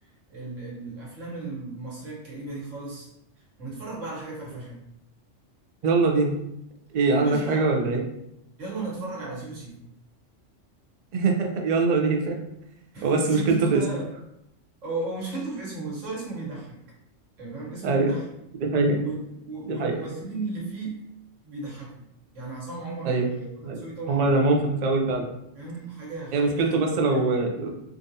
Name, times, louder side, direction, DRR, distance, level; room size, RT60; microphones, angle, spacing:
voice 1, 0.0-3.1 3.6-4.8 7.1-7.9 8.6-9.9 12.9-14.1 14.8-16.8 17.4-18.2 18.8-21.0 21.4-22.0 22.3-23.5 23.7-24.4 25.5-27.2, right 3 dB, 85° right, -5 dB, 1.5 m, -35 dB
voice 2, 5.8-6.3 6.9-8.0 11.1-12.4 13.0-13.8 17.8-18.1 18.6-19.0 19.7-20.0 23.0-23.3 23.6-25.3 26.3-27.7, right 3 dB, 60° right, 2 dB, 0.4 m, -23 dB
3.5 x 2.5 x 2.7 m, 0.81 s
omnidirectional pair, 1.3 m